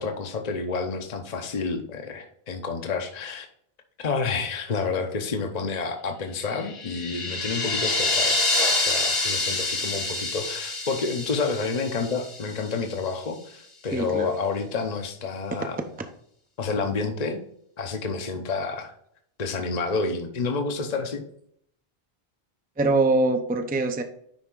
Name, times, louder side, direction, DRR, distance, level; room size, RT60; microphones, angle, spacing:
voice 1, 0.0-3.5 4.0-8.4 8.8-15.8 16.6-17.4 17.8-18.9 19.4-21.2, left 4 dB, 45° left, 4 dB, 0.8 m, -29 dB
sound 1, 6.5-12.7, left 2 dB, 70° left, 1.6 m, -27 dB
voice 2, 13.9-14.3 22.8-24.0, right 2 dB, 10° right, 6 dB, 0.5 m, -23 dB
10.0 x 3.5 x 3.8 m, 0.68 s
omnidirectional pair, 1.1 m